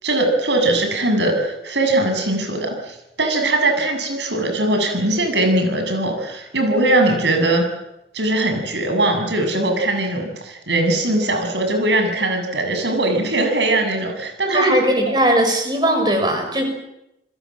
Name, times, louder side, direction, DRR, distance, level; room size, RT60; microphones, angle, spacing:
voice 1, 0.0-7.6 8.1-14.8 15.0-15.1, right 2 dB, 85° right, 5 dB, 7.8 m, -20 dB
voice 2, 14.5-16.7, right 1 dB, 25° right, 5 dB, 6.7 m, -18 dB
29.5 x 21.5 x 7.6 m, 0.87 s
head